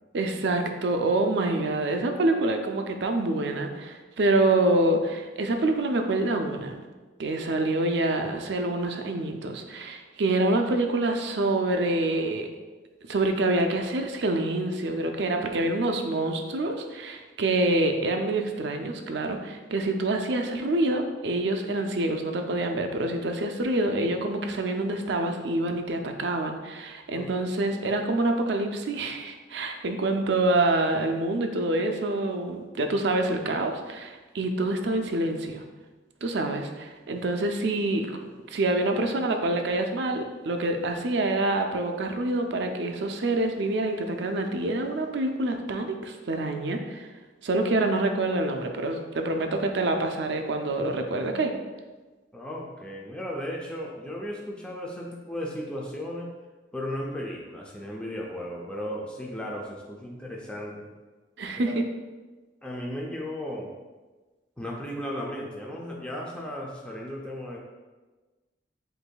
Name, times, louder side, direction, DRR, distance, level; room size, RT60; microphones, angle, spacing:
voice 1, 0.1-6.8 7.2-12.5 13.1-35.6 36.2-38.2 38.5-47.1 47.4-51.5 61.4-61.8, right 2 dB, 70° right, 5 dB, 0.5 m, -26 dB
voice 2, 52.3-56.3 56.7-60.9 61.6-61.8 62.6-63.7 64.6-67.6, equal, 5° left, -3 dB, 0.4 m, -35 dB
7.8 x 2.6 x 2.3 m, 1.3 s
head